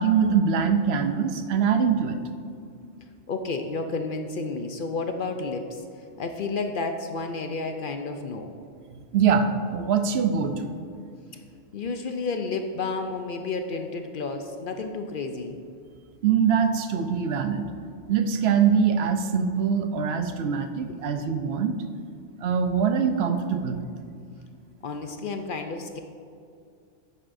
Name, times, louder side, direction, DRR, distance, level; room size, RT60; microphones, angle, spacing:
voice 1, 0.0-2.2 9.1-10.8 16.2-17.6 18.1-21.8 22.4-23.9, right 6 dB, 70° right, 8 dB, 0.8 m, -23 dB
voice 2, 3.3-5.8 6.2-8.5 11.7-15.6 24.8-26.0, left 3 dB, 60° left, 6 dB, 0.6 m, -31 dB
11.0 x 8.8 x 2.6 m, 2.3 s
omnidirectional pair, 1.2 m